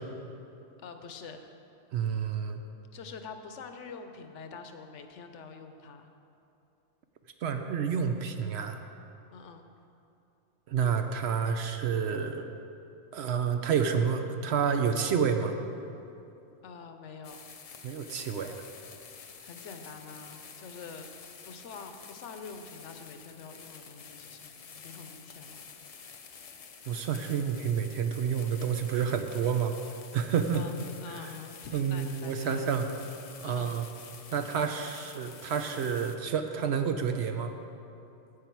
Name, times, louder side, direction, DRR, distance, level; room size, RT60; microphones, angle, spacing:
voice 1, 0.8-1.5 2.9-6.1 9.3-9.6 16.6-17.4 19.2-21.1 21.5-25.7 30.5-32.7 33.4-33.8, left 5 dB, 70° left, 7 dB, 1.0 m, -46 dB
voice 2, 1.9-2.6 7.4-8.8 10.7-12.4 13.1-15.6 17.8-18.6 26.9-29.7 30.1-30.6 31.1-31.3 31.7-32.8 33.4-33.9 34.3-37.5, right 7 dB, 65° right, 6 dB, 0.8 m, -29 dB
sound 1, 17.2-36.2, left 6 dB, 55° left, 0.4 m, -49 dB
9.7 x 8.5 x 4.6 m, 2.8 s
omnidirectional pair, 1.3 m